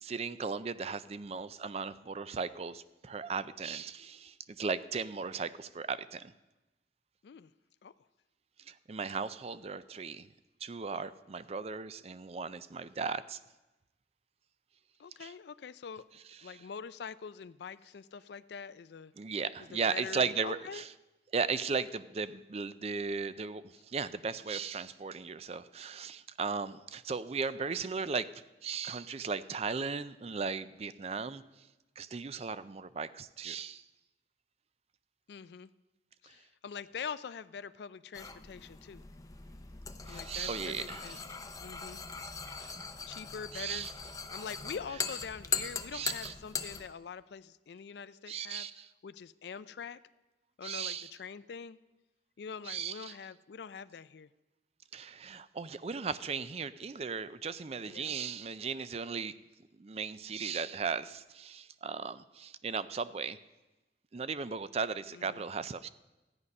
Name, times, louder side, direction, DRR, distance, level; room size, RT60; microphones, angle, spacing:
voice 1, 0.0-6.3 8.7-10.3 10.6-13.4 15.2-15.3 16.4-16.6 19.2-20.9 21.3-31.4 32.0-33.8 40.1-41.2 42.6-42.7 43.5-43.9 45.9-46.3 48.3-48.9 50.6-51.1 52.7-53.1 54.9-59.3 59.8-63.4 64.1-65.9, right 5 dB, 35° right, 15 dB, 0.4 m, -36 dB
voice 2, 15.0-16.0 16.4-19.1 19.7-20.8 35.3-35.7 36.2-39.0 40.1-41.2 41.6-42.0 42.3-42.4 43.1-44.0 44.3-48.7 49.0-50.0 50.6-51.8 52.4-54.3 57.9-58.2 65.1-65.5, left 6 dB, 70° left, 15 dB, 0.4 m, -44 dB
sound 1, 38.1-46.9, left 5 dB, 20° left, 0.6 m, -40 dB
14.0 x 9.8 x 5.3 m, 1.1 s
head